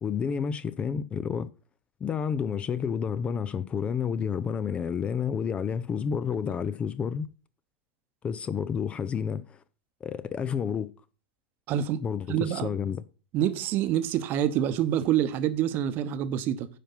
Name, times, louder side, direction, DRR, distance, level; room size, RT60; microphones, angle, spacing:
voice 1, 0.0-1.5 2.0-7.3 8.2-9.6 10.0-10.9 12.0-13.0, left 7 dB, 20° left, 0.5 m, -30 dB
voice 2, 11.7-12.0 12.3-12.7 13.3-16.7, right 11 dB, 35° right, 0.9 m, -26 dB
10.0 x 5.7 x 5.7 m
figure-of-eight pair, 90°, 6 cm